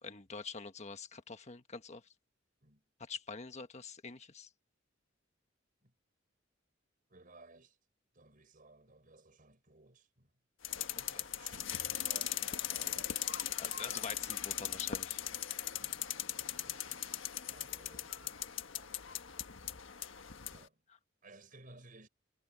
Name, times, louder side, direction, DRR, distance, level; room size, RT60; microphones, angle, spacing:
voice 1, 0.0-2.0 3.0-4.5 11.1-11.3 13.6-15.2, left 5 dB, 35° left, 1.5 m, -46 dB
voice 2, 7.1-7.8 8.1-10.4 10.9-13.3 15.7-18.5 20.5-20.9 21.2-22.1, right 2 dB, 45° right, 5.5 m, -59 dB
sound 1, 10.6-20.6, left 11 dB, 80° left, 1.5 m, -39 dB
head